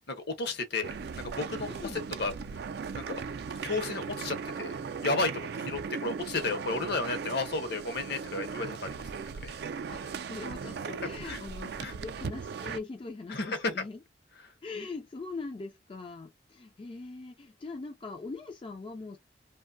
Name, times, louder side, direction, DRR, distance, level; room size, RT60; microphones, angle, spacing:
voice 1, 0.1-2.3 2.9-3.2 3.6-4.7 5.0-8.9 9.4-9.6 11.3-11.4 11.8-11.9 13.3-13.6, left 3 dB, 60° left, 0.8 m, -33 dB
sound 1, 0.8-12.8, right 5 dB, 60° right, 0.3 m, -38 dB
voice 2, 1.7-2.0 5.6-5.7 9.9-14.0 14.6-19.2, left 3 dB, 30° left, 0.3 m, -41 dB
2.5 x 2.2 x 2.5 m
head